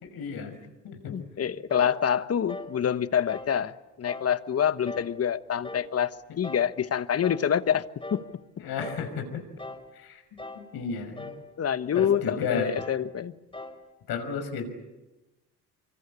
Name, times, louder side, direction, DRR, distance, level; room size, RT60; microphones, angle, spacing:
voice 1, 0.1-0.6 0.8-1.2 8.6-9.4 9.9-10.2 10.5-11.3 11.9-12.7 14.1-14.7, left 5 dB, 65° left, 6.0 m, -33 dB
voice 2, 1.1-7.8 8.1-8.2 11.6-13.3, left 8 dB, 35° left, 1.2 m, -26 dB
sound 1, 1.7-2.0 2.5-2.8 3.3-3.6 4.1-4.3 4.9-5.2 5.6-5.9 6.4-6.7 7.2-7.5 8.0-8.3 8.8-9.1 9.6-9.9 10.4-10.7 11.2-11.4 11.9-12.2 12.7-13.0 13.5-13.8, left 2 dB, 15° left, 4.5 m, -40 dB
25.0 x 24.5 x 8.6 m
supercardioid pair, 80°, 40 cm